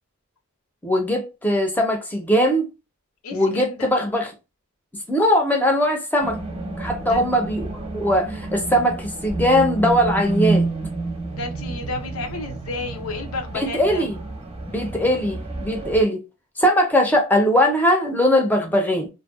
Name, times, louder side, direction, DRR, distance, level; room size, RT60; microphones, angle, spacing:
voice 1, 0.8-2.7 3.3-4.3 5.1-6.4 6.8-7.7 7.9-10.7 13.5-14.2 14.7-16.2 16.6-19.1, equal, 10° left, 0.6 m, -20 dB
voice 2, 3.2-3.9 7.1-7.3 11.3-14.1, left 3 dB, 80° left, 0.7 m, -32 dB
sound 1, 6.2-16.0, right 2 dB, 25° right, 0.8 m, -29 dB
2.6 x 2.2 x 2.3 m
head